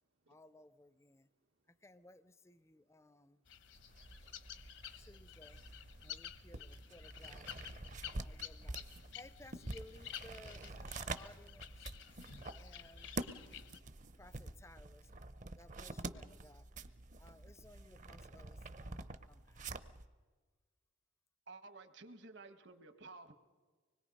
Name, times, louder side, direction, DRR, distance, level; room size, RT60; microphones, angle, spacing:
voice 1, 0.3-1.3 1.8-3.4 5.0-5.6 6.0-7.6 8.2-8.8 9.1-11.9 12.5-13.2 14.2-15.1 15.6-16.7 17.2-19.7, left 1 dB, 15° left, 14 dB, 0.5 m, -59 dB
voice 2, 1.1-1.5 3.0-3.2 3.5-5.1 10.2-11.4 11.8-13.1, right 3 dB, 90° right, 0 dB, 1.3 m, -74 dB
sound 1, 3.5-13.8, left 10 dB, 70° left, 1.0 m, -52 dB
sound 2, 3.7-20.1, right 2 dB, 40° right, 0.7 m, -48 dB
voice 3, 21.5-23.3, right 3 dB, 65° right, 10 dB, 1.4 m, -53 dB
25.0 x 21.0 x 5.3 m, 1.4 s
head